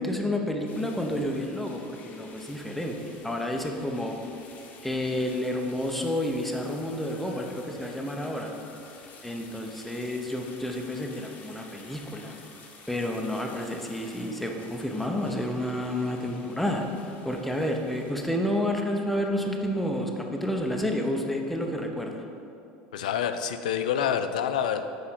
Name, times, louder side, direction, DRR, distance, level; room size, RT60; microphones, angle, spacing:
voice 1, 0.0-4.1 4.8-8.5 9.2-12.3 12.9-16.8 17.2-22.2, left 1 dB, 5° left, 2 dB, 0.8 m, -30 dB
sound 1, 0.6-18.1, left 4 dB, 45° left, 1.1 m, -51 dB
voice 2, 22.9-24.8, left 8 dB, 90° left, 8 dB, 0.3 m, -27 dB
6.3 x 4.2 x 5.7 m, 2.8 s
supercardioid pair, 95°, 4 cm